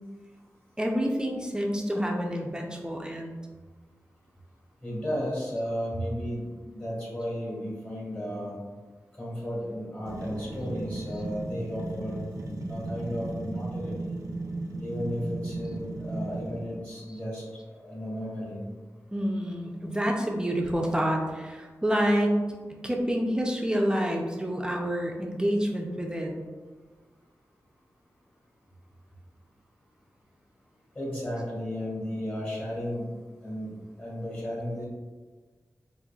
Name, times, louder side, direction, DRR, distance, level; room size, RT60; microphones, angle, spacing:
voice 1, 0.8-3.4 19.1-22.4 22.8-26.3, equal, 15° right, 0 dB, 0.4 m, -28 dB
voice 2, 4.8-8.6 9.1-12.2 12.7-14.2 14.8-17.4 17.7-18.6 30.9-33.1 33.4-33.7 34.0-34.8, equal, 30° left, -6 dB, 1.5 m, -34 dB
sound 1, 10.1-16.8, right 2 dB, 85° right, 0.6 m, -35 dB
5.3 x 2.5 x 2.3 m, 1.4 s
wide cardioid pair, 115°, 6 cm